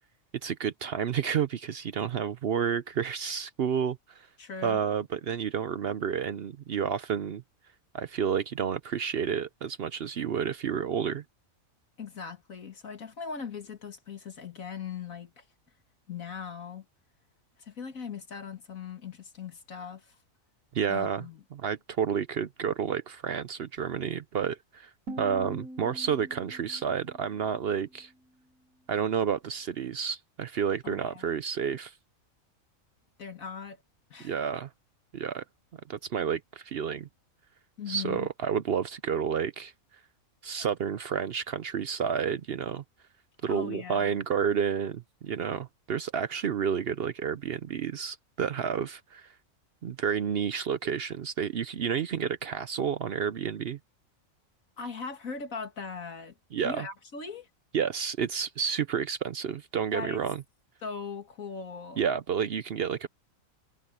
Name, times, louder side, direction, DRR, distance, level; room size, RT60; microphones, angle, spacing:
voice 1, 0.4-4.3 4.6-7.4 7.9-11.2 20.7-21.2 21.5-24.9 25.2-28.1 28.9-31.9 34.2-34.7 35.1-35.4 35.9-37.1 37.9-39.7 40.4-42.8 43.4-49.3 49.8-53.8 56.5-56.9 57.7-60.4 62.0-63.1, right 7 dB, 60° right, 0.7 m, -30 dB
voice 2, 4.4-4.8 12.0-15.4 16.1-16.9 17.6-20.2 20.9-21.4 30.8-31.3 33.2-33.8 34.1-34.3 37.8-38.3 43.5-44.2 54.8-56.4 56.6-57.5 59.9-60.2 60.8-62.0, left 6 dB, 80° left, 2.6 m, -39 dB
sound 1, 25.1-28.1, right 1 dB, 80° right, 1.7 m, -44 dB
omnidirectional pair, 1.4 m